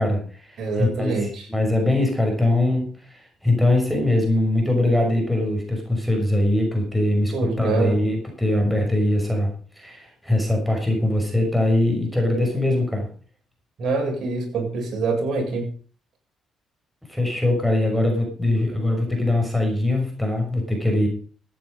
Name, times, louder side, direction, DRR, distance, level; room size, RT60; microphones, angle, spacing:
voice 1, 0.0-13.1 17.1-21.1, left 1 dB, ahead, 2 dB, 6.0 m, -22 dB
voice 2, 0.6-1.5 7.3-8.1 13.8-15.7, right 3 dB, 60° right, 1 dB, 7.3 m, -25 dB
15.0 x 9.3 x 5.3 m, 0.41 s
cardioid pair, 90°, 0 cm